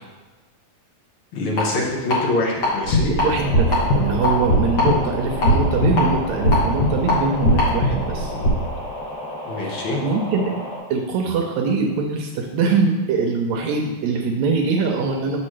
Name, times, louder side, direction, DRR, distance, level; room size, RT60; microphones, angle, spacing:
voice 1, 1.3-3.1 9.5-10.0, left 2 dB, 60° left, -3 dB, 1.4 m, -24 dB
sound 1, 1.6-1.7 2.1-2.7 3.0-3.3 3.7-4.9 5.4-7.2 7.5-7.7, left 3 dB, 40° left, 1.8 m, -22 dB
sound 2, 2.9-8.5, equal, 90° left, 2.5 m, -21 dB
voice 2, 3.1-8.3 9.6-10.6 10.9-15.4, right 4 dB, 75° right, 2 dB, 1.7 m, -23 dB
sound 3, 3.4-10.8, left 1 dB, 15° left, 1.5 m, -33 dB
7.4 x 6.0 x 3.2 m, 1.3 s
omnidirectional pair, 3.5 m